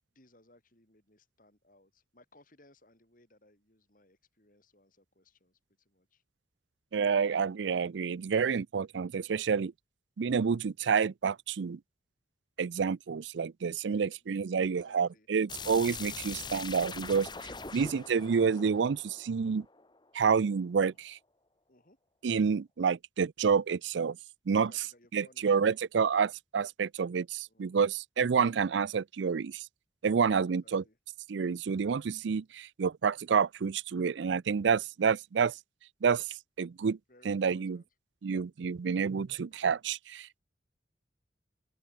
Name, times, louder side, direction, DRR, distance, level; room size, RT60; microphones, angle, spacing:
voice 1, 0.1-6.2 9.2-9.5 13.9-15.3 21.7-22.0 24.5-25.8 27.5-27.9 30.6-31.0 37.1-37.9, left 1 dB, 45° left, 5.5 m, -64 dB
voice 2, 6.9-9.7 10.2-11.8 12.6-19.7 20.1-21.2 22.2-24.2 24.5-24.7 25.1-29.6 30.0-30.8 31.3-35.6 36.0-36.3 36.6-37.0 37.3-37.8 38.2-40.4, right 6 dB, 80° right, 0.4 m, -29 dB
sound 1, 15.5-20.2, left 5 dB, 25° left, 1.8 m, -43 dB
open air
head